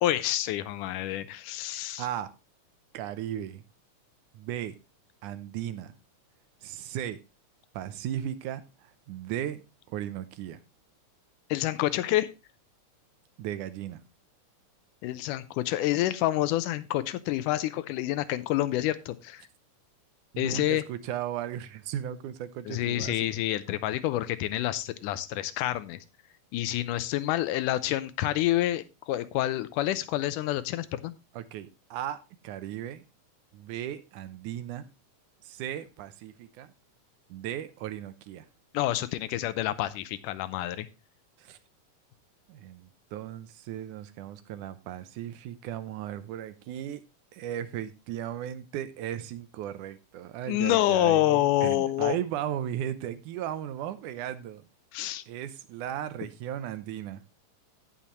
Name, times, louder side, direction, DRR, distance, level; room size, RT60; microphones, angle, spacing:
voice 1, 0.0-2.1 11.5-12.3 15.0-19.4 20.4-20.8 22.7-26.0 26.5-31.1 38.7-40.9 50.5-52.2 54.9-55.2, left 14 dB, 85° left, 2.2 m, -28 dB
voice 2, 2.0-2.3 2.9-3.6 4.3-4.8 5.2-5.9 6.6-7.2 7.7-8.6 9.1-9.6 9.9-10.6 13.4-14.0 20.3-23.3 31.3-33.0 33.5-34.9 35.4-36.7 37.3-38.5 41.4-41.6 42.5-47.0 47.3-54.6 55.3-57.2, right 11 dB, 80° right, 2.2 m, -36 dB
17.0 x 5.7 x 3.0 m
omnidirectional pair, 3.7 m